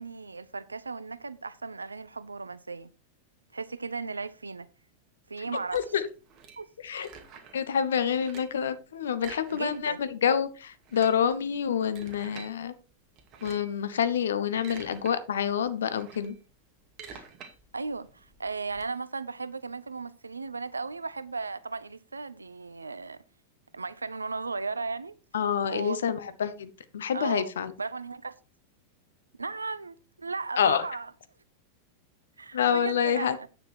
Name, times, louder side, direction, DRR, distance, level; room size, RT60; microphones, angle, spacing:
voice 1, 0.0-2.9 3.5-4.7 5.3-5.8 6.6-6.7 9.5-10.0 17.7-23.2 23.7-25.1 25.7-26.0 27.1-27.5 27.8-28.3 29.4-31.1 32.4-33.5, right 4 dB, 80° right, 0.6 m, -36 dB
voice 2, 5.7-6.1 6.8-7.1 7.5-12.7 13.4-16.4 25.3-27.7 30.6-30.8 32.5-33.4, left 8 dB, 65° left, 1.0 m, -27 dB
sound 1, 5.7-7.7 8.0-8.6 9.1-10.1 10.3-10.4 10.7-12.5 13.2-13.8 14.3-15.1 15.5-18.8, right 6 dB, 35° right, 2.2 m, -48 dB
9.6 x 6.6 x 4.4 m
figure-of-eight pair, 90°, 0 cm